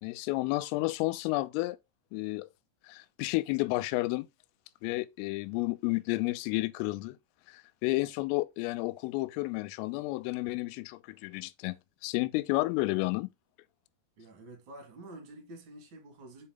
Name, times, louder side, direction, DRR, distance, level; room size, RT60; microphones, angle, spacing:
voice 1, 0.0-1.8 2.1-2.5 2.8-4.3 4.8-7.2 7.5-13.3, left 21 dB, 85° left, 3.1 m, -31 dB
voice 2, 14.2-16.5, right 1 dB, 50° right, 1.4 m, -48 dB
7.7 x 4.3 x 3.8 m
omnidirectional pair, 6.0 m